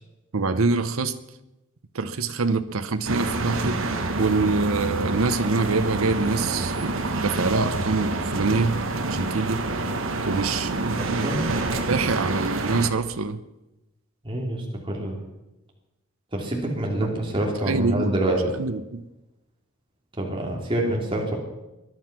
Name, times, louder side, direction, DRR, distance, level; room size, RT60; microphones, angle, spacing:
voice 1, 0.3-1.2 1.9-3.8 4.2-9.8 10.3-11.6 11.9-13.4 17.0-17.1 17.7-19.0, right 3 dB, 90° right, 0.8 m, -25 dB
sound 1, 3.1-12.9, right 2 dB, 70° right, 1.4 m, -27 dB
voice 2, 11.0-11.4 14.2-15.2 16.3-18.4 20.2-21.3, right 1 dB, 25° right, 2.9 m, -27 dB
20.5 x 11.5 x 6.0 m
head